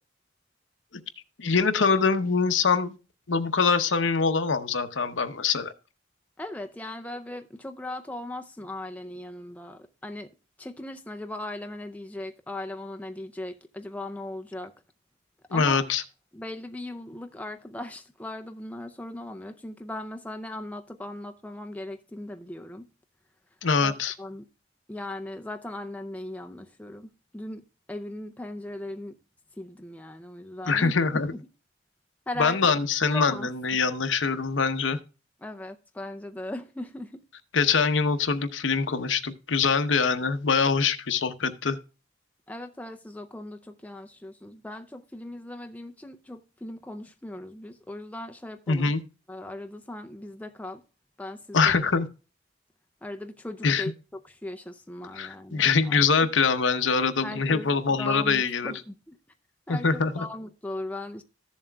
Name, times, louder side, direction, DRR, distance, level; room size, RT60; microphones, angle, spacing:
voice 1, 1.4-3.0 3.3-5.7 15.5-16.0 23.6-24.1 30.7-31.3 32.4-35.0 37.5-41.8 48.7-49.0 51.5-52.1 53.6-53.8 55.1-58.7 59.7-60.2, left 5 dB, 85° left, 0.8 m, -24 dB
voice 2, 6.4-10.3 10.6-14.7 15.5-15.8 16.3-22.9 23.8-24.4 24.9-27.6 27.9-29.2 29.6-30.9 31.3-31.4 32.3-32.6 33.0-33.5 35.4-37.2 42.5-48.9 49.3-50.8 51.2-51.7 53.0-56.3 57.2-59.2 59.7-61.2, left 1 dB, 10° left, 0.4 m, -38 dB
14.5 x 7.3 x 2.3 m
head